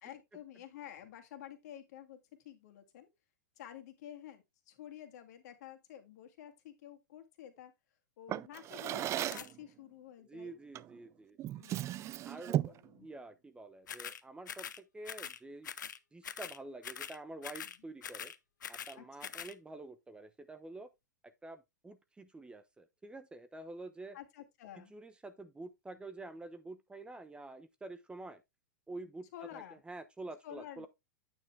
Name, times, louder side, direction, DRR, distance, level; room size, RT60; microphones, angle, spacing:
voice 1, 0.0-2.2 2.4-3.1 3.6-7.7 8.2-10.6 11.5-12.1 12.4-13.1 17.6-17.9 19.0-19.3 24.1-24.9 29.3-29.8 30.4-30.9, left 11 dB, 60° left, 2.0 m, -51 dB
Drawer open or close, 8.3-9.6 10.7-11.0 11.4-12.9, right 13 dB, 30° right, 0.4 m, -36 dB
sound 1, 9.3-9.5 13.9-14.2 14.5-14.8 15.1-15.4 15.6-16.6 16.8-17.2 17.4-17.8 18.0-19.0 19.2-19.5, left 8 dB, 80° left, 0.7 m, -43 dB
voice 2, 10.2-11.4 12.2-12.7 13.0-14.7 14.9-15.7 16.1-18.3 18.7-20.9 21.4-24.2 24.8-28.4 28.9-30.9, right 2 dB, 10° right, 0.9 m, -48 dB
9.1 x 5.5 x 3.3 m
hypercardioid pair, 105°, 10 cm